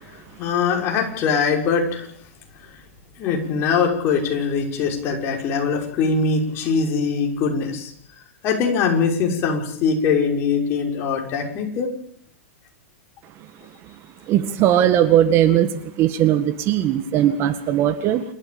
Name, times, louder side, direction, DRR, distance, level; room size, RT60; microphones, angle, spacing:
voice 1, 0.0-2.1 2.7-2.8 3.2-7.9 8.4-11.9, left 5 dB, 35° left, 2 dB, 6.1 m, -22 dB
voice 2, 14.3-15.7 16.0-18.2, right 11 dB, 35° right, 11 dB, 1.8 m, -18 dB
28.5 x 13.5 x 8.9 m, 0.66 s
hypercardioid pair, 135°, 7 cm